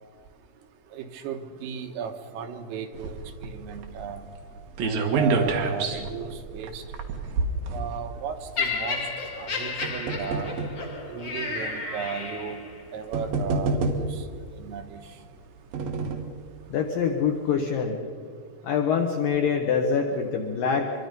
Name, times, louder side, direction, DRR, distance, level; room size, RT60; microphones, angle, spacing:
voice 1, 0.9-4.2 4.8-6.8 7.7-9.0 9.4-10.6 11.1-12.6 12.9-14.1 14.6-15.0, right 7 dB, 80° right, 5 dB, 3.9 m, -35 dB
sound 1, 2.9-8.4 9.3-10.8 11.6-11.7 12.7-12.8 13.1-14.3 15.3-16.4 16.8-16.9 17.2-17.3, right 3 dB, 60° right, 2.9 m, -28 dB
Laughter, 8.6-12.8 13.6-13.8, left 4 dB, 50° left, 1.3 m, -32 dB
voice 2, 16.7-18.0 18.6-20.9, left 6 dB, 80° left, 3 dB, 2.0 m, -25 dB
26.0 x 23.5 x 5.4 m, 2.1 s
omnidirectional pair, 5.9 m